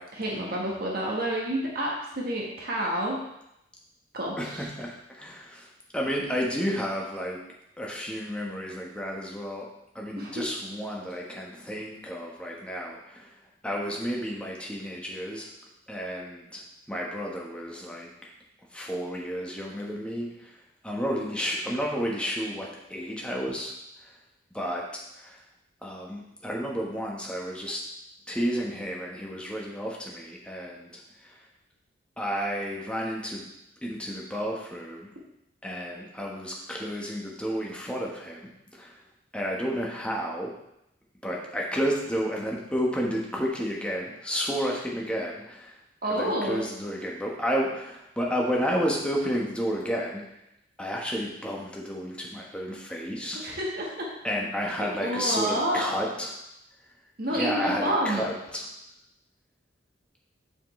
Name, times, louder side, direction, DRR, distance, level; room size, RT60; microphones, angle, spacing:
voice 1, 0.1-3.2 4.1-4.7 10.2-10.3 46.0-46.6 53.3-54.1 55.0-55.8 57.2-58.3, right 1 dB, 55° right, -2 dB, 1.4 m, -29 dB
voice 2, 4.4-5.7 5.9-7.4 7.8-9.7 9.9-13.3 13.6-15.5 15.9-16.6 16.9-18.1 18.7-20.5 20.8-23.7 24.5-24.8 25.2-25.4 25.8-27.8 28.3-31.4 32.2-33.5 33.8-35.1 35.6-39.0 39.3-40.5 41.2-45.7 46.1-50.2 50.8-53.4 54.2-56.4 57.3-58.7, equal, 5° left, -2 dB, 1.3 m, -31 dB
7.1 x 6.8 x 3.2 m, 0.83 s
head